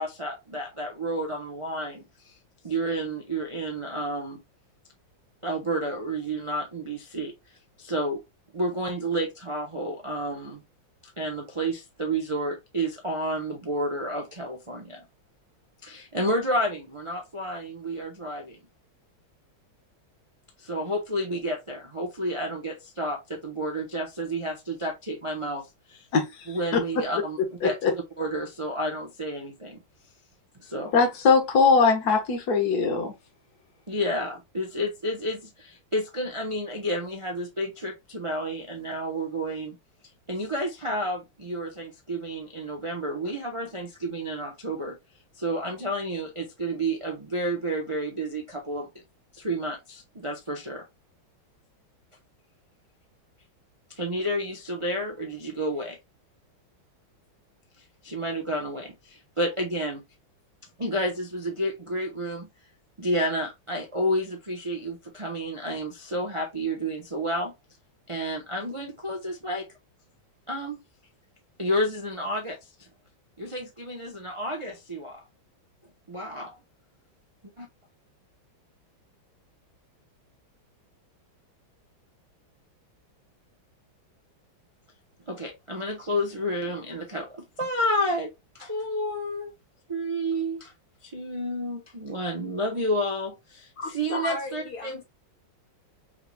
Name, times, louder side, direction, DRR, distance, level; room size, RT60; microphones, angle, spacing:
voice 1, 0.0-2.4 2.6-4.4 5.4-7.3 7.8-8.2 8.5-10.6 11.2-15.0 15.8-18.6 20.6-26.1 26.5-29.8 30.6-30.9 33.9-39.8 40.3-45.0 45.4-48.9 49.3-50.8 53.9-56.0 57.8-60.0 60.8-62.5 63.0-67.5 68.1-69.7 70.5-70.8 71.6-72.9 73.4-75.2 76.1-76.6 77.6-77.7 85.3-89.5 89.9-90.7 91.0-95.0, equal, 50° right, 0.3 m, -30 dB
voice 2, 30.9-33.1, left 5 dB, 55° left, 1.6 m, -21 dB
voice 3, 93.8-95.0, left 3 dB, 80° left, 3.0 m, -34 dB
5.6 x 3.2 x 2.2 m
omnidirectional pair, 2.2 m